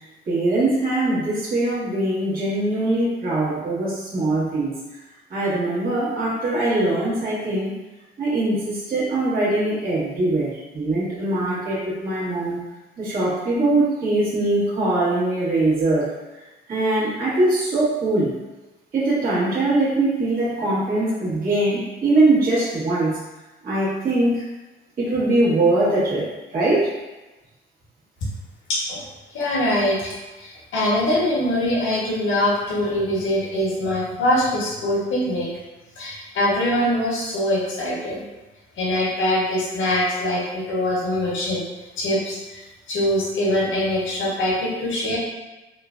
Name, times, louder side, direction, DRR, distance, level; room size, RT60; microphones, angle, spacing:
voice 1, 0.2-4.7 5.3-7.7 8.2-12.6 13.0-16.1 16.7-18.3 18.9-23.2 23.6-24.4 25.0-26.3 26.5-26.9, right 2 dB, 50° right, -10 dB, 1.3 m, -22 dB
voice 2, 28.7-29.0 29.3-35.5 36.0-38.2 38.8-41.6 42.0-42.6 42.9-45.2, left 1 dB, 75° left, -5 dB, 1.0 m, -23 dB
3.1 x 2.1 x 2.4 m, 1.1 s
cardioid pair, 90°, 20 cm